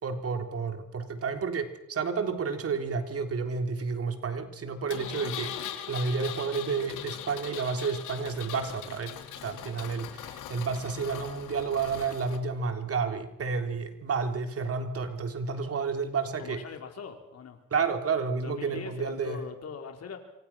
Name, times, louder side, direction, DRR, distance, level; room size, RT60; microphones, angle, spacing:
voice 1, 0.0-16.6 17.7-19.4, right 5 dB, 50° right, 6 dB, 3.6 m, -31 dB
Engine, 4.9-12.4, left 10 dB, 90° left, 3.0 m, -40 dB
voice 2, 16.4-17.6 18.3-20.2, left 6 dB, 55° left, 4 dB, 4.8 m, -41 dB
27.5 x 25.5 x 6.1 m, 0.78 s
cardioid pair, 90°, 30 cm